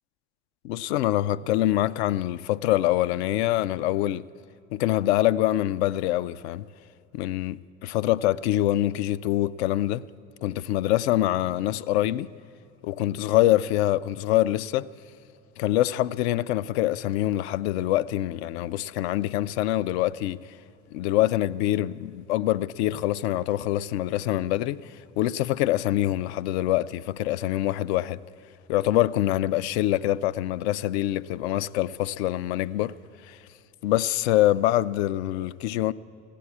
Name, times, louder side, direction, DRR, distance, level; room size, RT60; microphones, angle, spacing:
voice 1, 0.6-4.3 4.7-6.7 7.1-10.0 10.4-12.3 12.8-14.9 15.6-20.5 20.9-28.2 28.7-32.9 33.2-33.4 33.8-35.9, left 14 dB, 65° left, 0.5 m, -25 dB
16.0 x 10.0 x 8.4 m
figure-of-eight pair, 65°, 36 cm